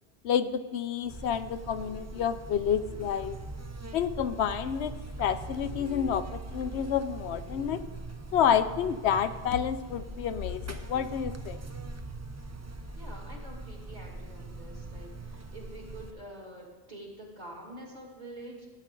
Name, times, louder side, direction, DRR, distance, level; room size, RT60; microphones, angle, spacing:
voice 1, 0.2-3.4 3.9-4.9 5.2-7.8 8.3-11.6, left 8 dB, 85° left, 11 dB, 0.9 m, -29 dB
Buzz, 1.1-16.1, right 2 dB, 20° right, 0.5 m, -41 dB
voice 2, 13.0-18.7, right 1 dB, 40° right, -1 dB, 2.5 m, -46 dB
17.0 x 8.7 x 3.8 m, 1.3 s
omnidirectional pair, 1.1 m